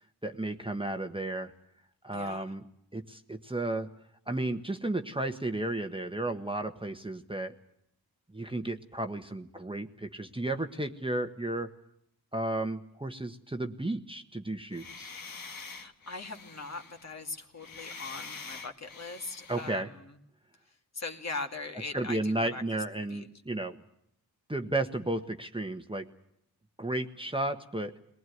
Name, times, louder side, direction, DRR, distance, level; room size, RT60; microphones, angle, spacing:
voice 1, 0.2-1.5 2.0-2.6 2.9-3.9 4.3-7.6 8.3-11.7 12.3-15.1 19.5-19.9 21.9-23.8 24.5-26.0 26.8-27.9, right 2 dB, 15° right, 6 dB, 1.4 m, -33 dB
voice 2, 2.1-2.5 15.6-20.2 20.7-22.8 23.1-23.3, left 3 dB, 40° left, 3 dB, 2.5 m, -41 dB
sound 1, 14.7-19.8, left 4 dB, 60° left, 1.9 m, -45 dB
21.5 x 19.0 x 9.5 m, 0.74 s
cardioid pair, 65°, 39 cm